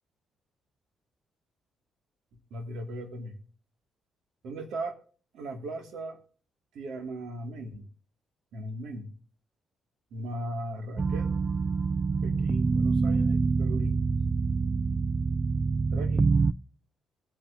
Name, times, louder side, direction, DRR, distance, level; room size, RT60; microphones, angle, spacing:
voice 1, 2.5-3.3 4.4-5.0 5.3-6.2 6.7-7.8 8.5-9.1 10.1-11.3 12.2-14.0 15.9-16.3, right 1 dB, 75° right, 5 dB, 2.7 m, -38 dB
sound 1, 11.0-16.5, right 4 dB, 30° right, 0.4 m, -26 dB
21.5 x 8.5 x 2.9 m, 0.40 s
cardioid pair, 90°, 0 cm